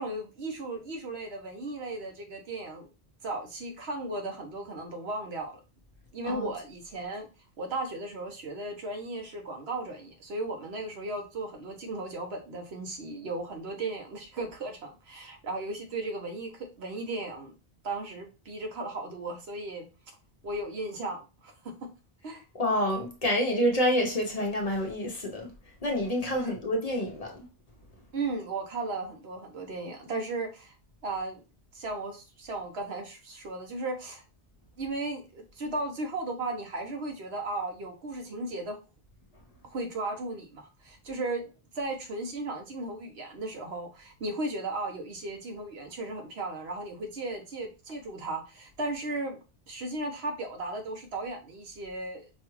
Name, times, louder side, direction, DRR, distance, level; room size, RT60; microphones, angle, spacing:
voice 1, 0.0-2.9 3.2-5.6 6.1-7.3 7.6-17.5 17.8-19.9 20.4-21.7 22.2-22.4 26.3-26.6 28.1-30.7 31.0-31.4 31.7-34.2 34.8-38.8 39.7-49.4 49.7-52.3, right 2 dB, 80° right, 1.1 m, -36 dB
voice 2, 22.6-25.5 25.8-27.4, equal, 40° left, 0.8 m, -28 dB
5.3 x 2.4 x 3.1 m
omnidirectional pair, 1.1 m